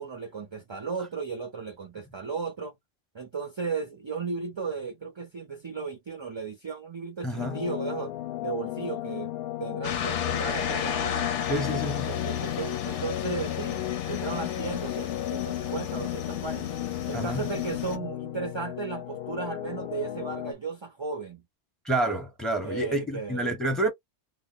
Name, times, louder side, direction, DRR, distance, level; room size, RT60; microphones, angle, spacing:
voice 1, 0.0-2.7 3.1-8.1 8.4-9.3 9.6-11.1 11.7-16.7 17.1-21.4 22.6-23.5, right 5 dB, 40° right, 0.4 m, -35 dB
voice 2, 7.2-7.6 11.5-12.2 17.1-17.4 21.8-23.9, right 1 dB, ahead, 0.8 m, -28 dB
sound 1, 7.4-20.5, left 13 dB, 65° left, 0.7 m, -35 dB
sound 2, 9.8-18.0, left 9 dB, 85° left, 0.9 m, -33 dB
2.4 x 2.0 x 3.7 m
omnidirectional pair, 1.2 m